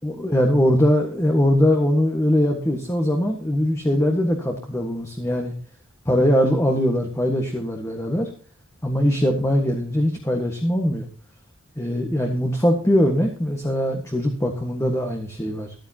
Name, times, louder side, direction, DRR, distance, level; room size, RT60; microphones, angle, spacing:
voice 1, 0.0-5.5 6.0-8.3 8.8-11.1 11.8-15.7, equal, 15° left, 2 dB, 1.6 m, -21 dB
14.5 x 12.5 x 2.9 m, 0.41 s
head